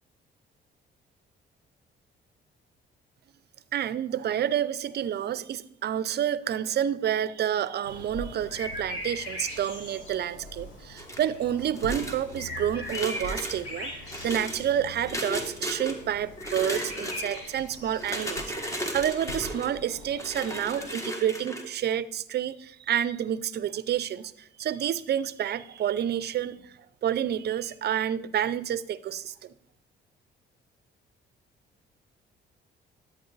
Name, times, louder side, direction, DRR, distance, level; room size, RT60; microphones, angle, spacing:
voice 1, 3.7-29.5, right 10 dB, 55° right, 16 dB, 0.5 m, -29 dB
sound 1, 7.8-20.9, left 1 dB, 90° left, 4.2 m, -40 dB
sound 2, 11.0-11.3 11.8-12.4 12.8-13.6 14.1-14.6 15.1-15.9 16.4-17.4 17.9-19.7 20.2-21.6, equal, 15° left, 1.7 m, -35 dB
10.5 x 8.6 x 3.9 m, 0.78 s
cardioid pair, 90°, 20 cm